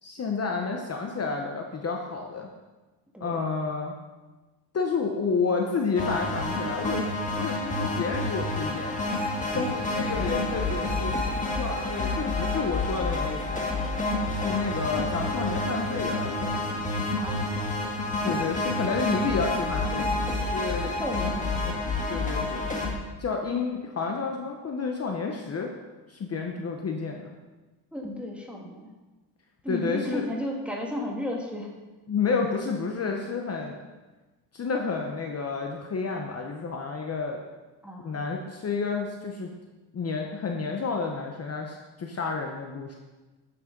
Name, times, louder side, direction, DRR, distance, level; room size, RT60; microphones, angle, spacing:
voice 1, 0.0-2.5 3.2-4.0 4.7-7.1 7.4-9.2 9.5-13.8 14.3-16.6 18.2-21.3 22.1-22.7 23.2-25.7 26.1-27.4 29.7-30.2 32.1-33.8 34.5-37.4 38.0-39.5 39.9-42.9, left 4 dB, 35° left, 2 dB, 0.9 m, -30 dB
sound 1, 5.9-22.9, left 2 dB, 20° left, 1.5 m, -29 dB
voice 2, 14.4-14.8 17.2-17.6 20.9-21.8 27.9-28.9 29.6-31.7 37.8-38.2, left 1 dB, 5° right, -1 dB, 1.6 m, -34 dB
9.0 x 6.2 x 5.2 m, 1.2 s
cardioid pair, 135°, 42 cm